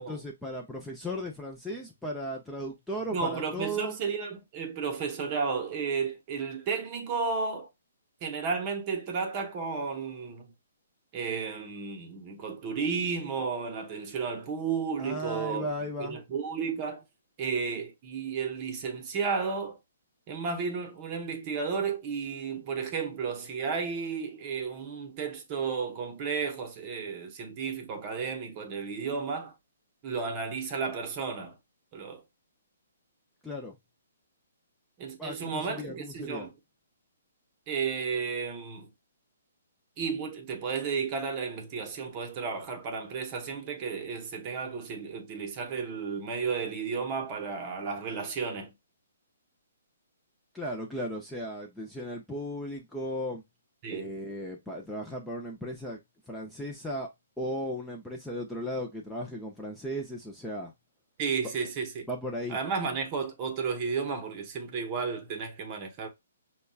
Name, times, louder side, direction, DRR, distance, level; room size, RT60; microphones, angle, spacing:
voice 1, 0.0-4.0 15.0-16.2 33.4-33.7 35.2-36.5 50.5-53.4 53.9-56.0 56.3-57.1 57.4-60.7 62.1-62.6, equal, 5° left, 0.5 m, -36 dB
voice 2, 3.1-7.7 8.2-10.5 11.1-15.7 16.0-17.0 17.4-19.8 20.3-29.5 30.0-31.6 31.9-32.2 35.0-36.5 37.7-38.9 40.0-48.7 53.8-54.1 61.2-62.0 62.5-66.1, right 5 dB, 30° right, 0.9 m, -33 dB
5.2 x 2.3 x 2.3 m
hypercardioid pair, 155°, 0 cm